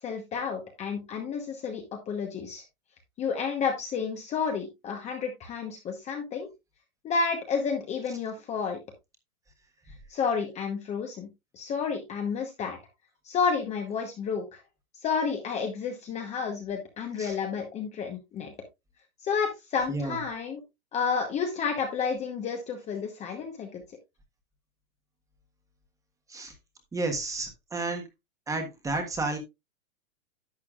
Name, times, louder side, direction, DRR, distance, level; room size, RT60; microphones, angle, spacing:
voice 1, 0.0-2.6 3.2-6.5 7.0-8.8 10.1-11.3 11.5-12.8 13.2-14.6 15.0-18.5 19.2-20.6 20.9-23.8, left 5 dB, 15° left, 4 dB, 1.0 m, -30 dB
voice 2, 26.9-28.0 28.5-29.4, right 3 dB, 10° right, 5 dB, 1.3 m, -31 dB
11.5 x 8.1 x 2.4 m, 0.22 s
hypercardioid pair, 145°, 42 cm